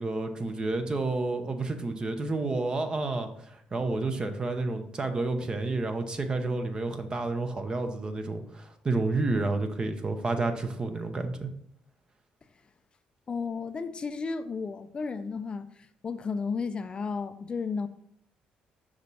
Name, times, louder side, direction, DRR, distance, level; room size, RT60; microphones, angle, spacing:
voice 1, 0.0-3.3 3.7-11.5, right 3 dB, 30° right, 0.8 m, -30 dB
voice 2, 13.3-15.7 16.0-17.9, left 5 dB, 35° left, 0.4 m, -33 dB
5.6 x 5.1 x 4.1 m
cardioid pair, 100°, 3 cm